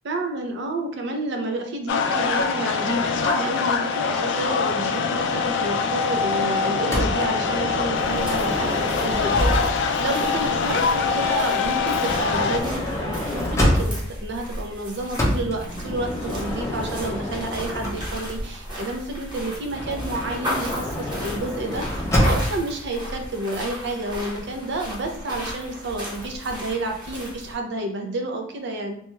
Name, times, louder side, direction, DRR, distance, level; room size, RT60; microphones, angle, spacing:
voice 1, 0.0-29.0, right 2 dB, 60° right, 3 dB, 0.5 m, -30 dB
sound 1, 1.9-12.6, left 5 dB, 65° left, 0.3 m, -24 dB
Motor vehicle (road) / Sliding door, 6.9-10.0 10.9-14.2 15.1-18.5 19.7-22.6, equal, 15° left, 0.6 m, -27 dB
sound 2, 7.9-27.6, equal, 20° right, 0.8 m, -36 dB
2.9 x 2.2 x 3.0 m, 0.67 s
head